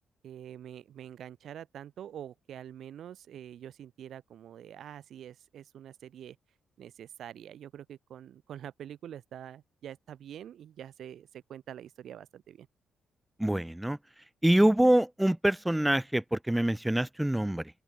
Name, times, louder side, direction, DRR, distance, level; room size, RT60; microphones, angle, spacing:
voice 1, 0.2-6.4 6.8-12.7, right 10 dB, 65° right, 2.5 m, -46 dB
voice 2, 13.4-14.0 14.4-17.7, right 1 dB, 10° right, 3.8 m, -25 dB
open air
hypercardioid pair, 45°, 0 cm